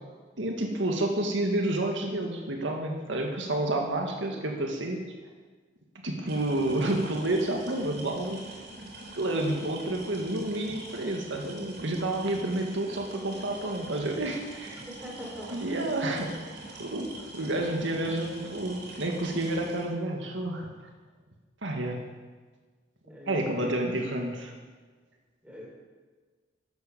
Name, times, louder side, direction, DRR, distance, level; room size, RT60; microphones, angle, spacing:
voice 1, 0.4-5.0 6.0-8.4 9.1-14.8 15.5-17.1 17.3-20.7 21.6-22.0 23.3-24.5, right 1 dB, 80° right, 2 dB, 2.1 m, -30 dB
sound 1, 6.3-19.8, right 2 dB, 60° right, 3.7 m, -44 dB
voice 2, 15.0-15.9 16.7-16.8 23.0-23.9 25.4-25.7, equal, 5° right, -2 dB, 4.0 m, -42 dB
12.5 x 12.0 x 7.3 m, 1.4 s
head